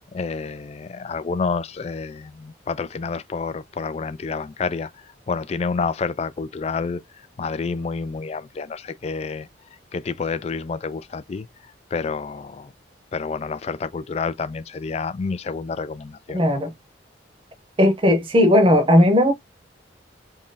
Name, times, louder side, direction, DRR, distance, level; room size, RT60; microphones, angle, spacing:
voice 1, 0.1-4.9 5.3-7.0 7.4-9.5 9.9-11.5 11.9-12.7 13.1-16.4, left 4 dB, 35° left, 0.3 m, -29 dB
voice 2, 16.3-16.7 17.8-19.3, left 1 dB, 30° right, 0.8 m, -16 dB
3.0 x 2.7 x 3.8 m
head